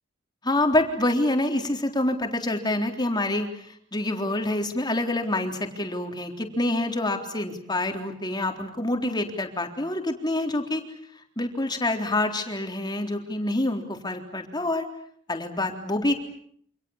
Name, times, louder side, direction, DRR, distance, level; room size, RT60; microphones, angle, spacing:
voice 1, 0.4-10.8 11.4-14.9 15.3-16.1, left 1 dB, 25° left, 4 dB, 3.8 m, -26 dB
29.0 x 27.0 x 7.3 m, 0.66 s
head